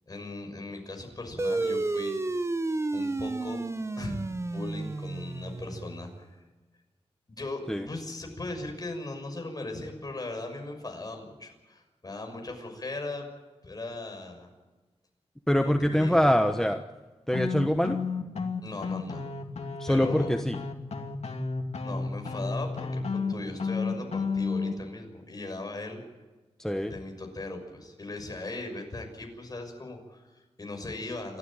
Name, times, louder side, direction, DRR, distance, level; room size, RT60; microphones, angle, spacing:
voice 1, 0.1-2.2 2.9-3.6 4.0-4.2 4.4-6.4 7.3-13.3 13.6-14.5 15.5-16.3 18.6-19.2 19.9-20.3 21.8-26.0 26.8-31.4, left 2 dB, 35° left, 3 dB, 6.3 m, -38 dB
sound 1, 1.4-6.3, right 2 dB, 25° right, 0.9 m, -31 dB
voice 2, 15.5-16.8 17.3-18.0 19.8-20.6 26.6-26.9, equal, 5° left, 5 dB, 1.1 m, -24 dB
sound 2, 17.3-24.7, left 4 dB, 85° left, 2.4 m, -32 dB
29.0 x 13.5 x 9.0 m, 1.2 s
wide cardioid pair, 120°, 11 cm